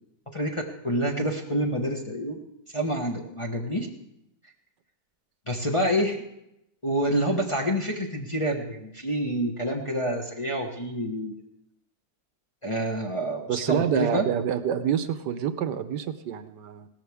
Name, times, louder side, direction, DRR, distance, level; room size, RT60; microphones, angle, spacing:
voice 1, 0.3-2.4 2.7-3.9 5.5-6.2 6.8-11.4 12.6-14.2, equal, 20° left, 0 dB, 1.0 m, -27 dB
voice 2, 13.5-16.9, right 9 dB, 75° right, 11 dB, 1.3 m, -27 dB
17.5 x 13.5 x 3.5 m, 0.82 s
omnidirectional pair, 1.9 m